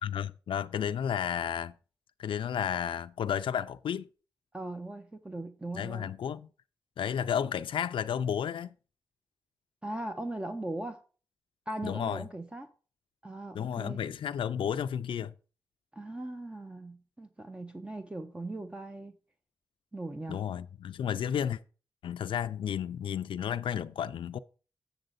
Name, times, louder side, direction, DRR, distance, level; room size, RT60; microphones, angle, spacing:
voice 1, 0.0-1.7 2.2-4.1 5.7-6.5 7.0-8.7 11.8-12.3 13.5-15.3 20.3-21.6 22.0-24.4, left 9 dB, 80° left, 0.3 m, -32 dB
voice 2, 4.5-6.1 9.8-11.0 11.7-12.7 13.2-14.0 15.9-19.1 19.9-20.4, right 1 dB, 10° right, 0.6 m, -39 dB
7.8 x 6.9 x 3.9 m
wide cardioid pair, 120°, 9 cm